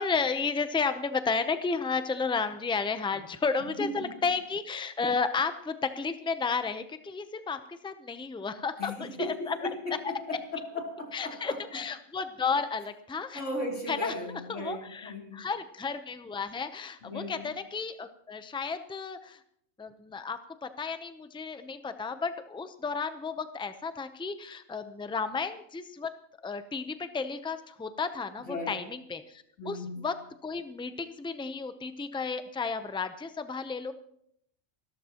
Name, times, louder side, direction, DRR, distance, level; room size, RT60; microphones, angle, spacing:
voice 1, 0.0-9.6 10.0-10.4 11.1-13.4 13.9-14.1 14.5-19.4 19.8-26.1 26.4-30.2 30.4-33.9, left 5 dB, 5° left, 10 dB, 0.4 m, -33 dB
voice 2, 3.8-4.1 8.8-11.6 13.3-15.4 17.0-17.5 28.4-28.7 29.6-30.0, left 1 dB, 60° left, -1 dB, 3.4 m, -36 dB
27.0 x 13.0 x 3.0 m, 0.71 s
omnidirectional pair, 1.4 m